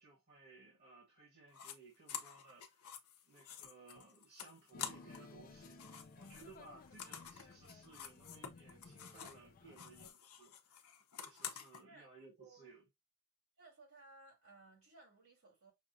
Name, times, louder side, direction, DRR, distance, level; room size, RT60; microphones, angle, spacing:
voice 1, 0.0-2.9 3.3-5.8 6.2-10.8 11.2-12.8, right 3 dB, 45° right, 1.6 m, -60 dB
sound 1, 1.5-1.8 2.1-5.3 5.6-9.4 9.7-11.8, left 8 dB, 75° left, 0.8 m, -49 dB
sound 2, 4.7-10.1, left 3 dB, 40° left, 0.5 m, -57 dB
voice 2, 12.4-12.8 13.6-15.7, right 3 dB, 70° right, 2.9 m, -61 dB
6.0 x 2.4 x 2.6 m
head